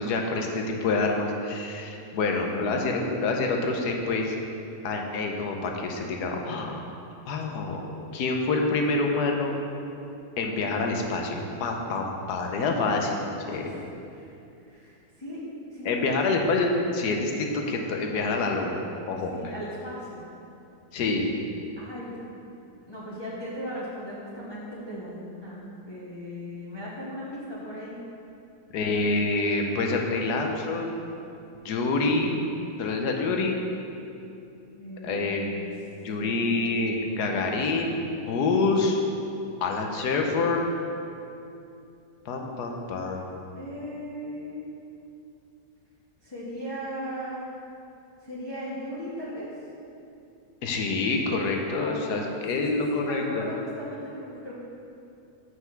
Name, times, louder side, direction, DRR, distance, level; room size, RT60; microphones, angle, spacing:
voice 1, 0.0-4.4 4.8-6.9 7.3-7.9 8.1-9.6 10.4-13.2 13.5-13.7 15.8-19.3 20.9-21.3 28.7-30.9 31.5-32.4 32.8-33.6 35.0-35.5 36.0-39.0 39.6-40.6 42.2-43.4 50.6-53.5, left 3 dB, 80° left, 2 dB, 1.3 m, -27 dB
voice 2, 2.2-2.8 12.7-13.1 13.4-13.7 14.1-14.3 14.6-15.4 15.7-16.1 19.3-20.3 21.8-22.1 22.9-27.9 34.7-35.6 36.2-36.7 43.5-44.7 46.2-47.5 48.2-49.5 51.7-54.5, equal, 20° left, -8 dB, 0.8 m, -37 dB
5.8 x 5.7 x 5.8 m, 2.7 s
omnidirectional pair, 1.7 m